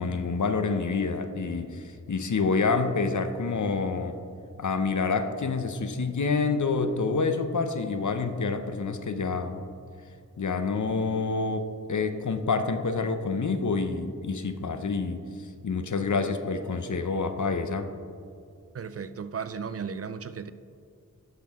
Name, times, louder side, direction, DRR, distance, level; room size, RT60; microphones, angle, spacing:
voice 1, 0.0-4.2 4.6-9.6 10.4-15.2 15.6-17.9, left 4 dB, 70° left, 0.7 m, -27 dB
voice 2, 18.7-20.5, right 6 dB, 50° right, 0.4 m, -35 dB
11.5 x 6.0 x 3.5 m
wide cardioid pair, 50°, 31 cm